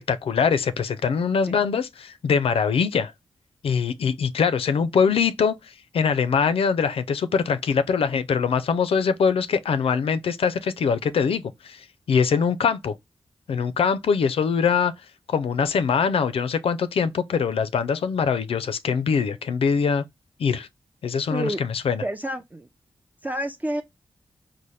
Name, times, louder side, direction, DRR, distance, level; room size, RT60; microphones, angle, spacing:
voice 1, 0.0-3.1 3.6-12.9 13.5-14.9 15.3-20.0 20.4-20.7 21.0-22.0, left 6 dB, 75° left, 0.4 m, -23 dB
voice 2, 21.3-21.6 22.0-22.7 23.2-23.8, right 1 dB, 15° right, 0.5 m, -29 dB
4.1 x 2.1 x 3.1 m
cardioid pair, 50°, 10 cm